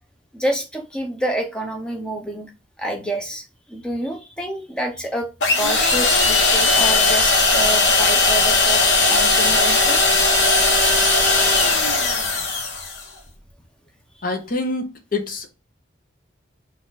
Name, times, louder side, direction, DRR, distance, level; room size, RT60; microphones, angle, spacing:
voice 1, 0.3-2.5 2.8-5.3 5.5-8.8 9.1-10.0 12.0-12.1, right 1 dB, 5° left, 0.6 m, -28 dB
sound 1, 5.4-13.0, left 3 dB, 65° left, 1.0 m, -17 dB
voice 2, 14.2-15.5, left 2 dB, 45° left, 0.7 m, -26 dB
4.3 x 2.5 x 3.9 m
head